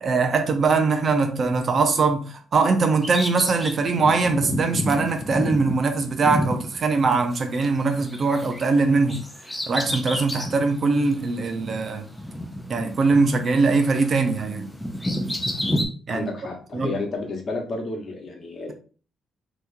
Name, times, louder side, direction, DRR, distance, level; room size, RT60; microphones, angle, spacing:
voice 1, 0.0-9.2 9.7-12.1 12.7-14.7 16.1-16.3 16.7-16.9, right 4 dB, 45° right, 0.6 m, -22 dB
Bird vocalization bird call bird song, 3.0-7.7 7.9-10.6 11.1-11.2 12.1-13.5 13.8-15.8, left 1 dB, 5° left, 0.6 m, -30 dB
voice 2, 16.1-18.7, left 3 dB, 45° left, 1.1 m, -31 dB
3.5 x 3.0 x 2.6 m
cardioid pair, 90°, 0 cm